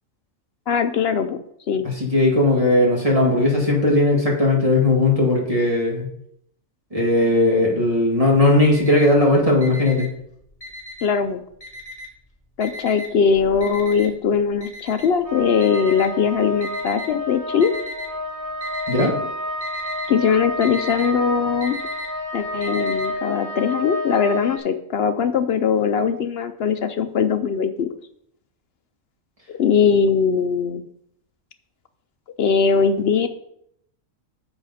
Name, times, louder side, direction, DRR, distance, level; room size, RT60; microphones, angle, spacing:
voice 1, 0.7-1.4 1.7-1.9 11.0-11.4 12.6-17.7 20.1-21.9 22.3-27.9 29.5-30.8 32.4-33.3, left 6 dB, 60° left, 10 dB, 0.7 m, -20 dB
voice 2, 1.8-6.1 6.9-10.1 18.9-19.1, left 2 dB, 25° right, -2 dB, 2.3 m, -18 dB
Alarm, 8.3-9.2 9.6-11.2 11.6-12.3 12.6-17.1 17.6-18.2 18.5-19.1 19.4-23.1, left 1 dB, 30° left, 2.4 m, -36 dB
sound 1, 15.2-24.6, left 1 dB, 85° right, 1.9 m, -30 dB
9.8 x 7.1 x 4.2 m, 0.73 s
omnidirectional pair, 1.4 m